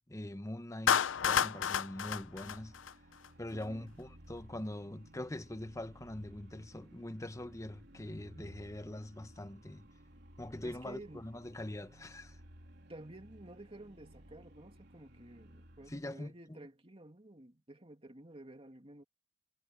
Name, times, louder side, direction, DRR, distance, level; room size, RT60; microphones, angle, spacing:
voice 1, 0.1-2.8 3.4-9.9 10.4-12.4 15.9-16.6, left 1 dB, 15° left, 0.9 m, -43 dB
Clapping, 0.9-3.3, left 8 dB, 90° left, 0.6 m, -31 dB
sound 1, 1.4-16.1, equal, 60° right, 3.6 m, -57 dB
voice 2, 3.5-3.9 10.6-11.3 12.9-19.0, right 1 dB, 30° right, 2.8 m, -52 dB
head